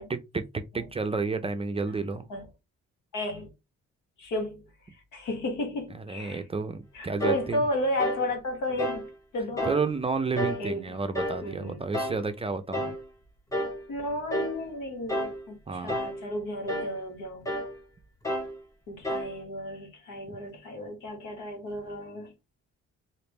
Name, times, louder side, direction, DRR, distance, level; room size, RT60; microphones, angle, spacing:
voice 1, 0.1-2.3 5.9-7.6 9.6-13.0 15.7-16.0 20.3-20.4, right 4 dB, 20° right, 0.4 m, -31 dB
voice 2, 3.1-3.5 4.2-4.6 5.1-6.4 6.9-9.7 10.6-10.9 11.4-11.8 13.9-17.5 18.9-22.3, left 1 dB, 85° left, 1.3 m, -33 dB
sound 1, 7.2-7.5 8.0-8.3 8.8-9.1 9.6-9.9 10.4-10.7 11.1-11.5 11.9-12.2 12.7-13.0 13.5-13.8 14.3-14.6 15.1-15.4 15.9-16.2 16.7-16.9 17.4-17.7 18.2-18.6 19.0-19.3, equal, 10° left, 0.8 m, -30 dB
3.2 x 2.5 x 3.1 m
cardioid pair, 90°, 30 cm